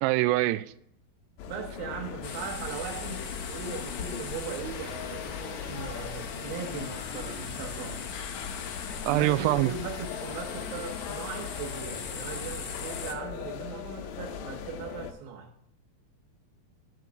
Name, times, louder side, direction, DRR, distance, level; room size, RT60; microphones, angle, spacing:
voice 1, 0.0-0.7 9.0-9.7, right 17 dB, 90° right, 2.7 m, -24 dB
sound 1, 1.4-15.1, left 8 dB, 85° left, 3.0 m, -40 dB
voice 2, 1.5-8.0 9.1-15.5, right 6 dB, 70° right, 2.7 m, -39 dB
sound 2, 2.2-13.1, left 6 dB, 65° left, 1.6 m, -39 dB
12.5 x 4.6 x 6.7 m
omnidirectional pair, 4.8 m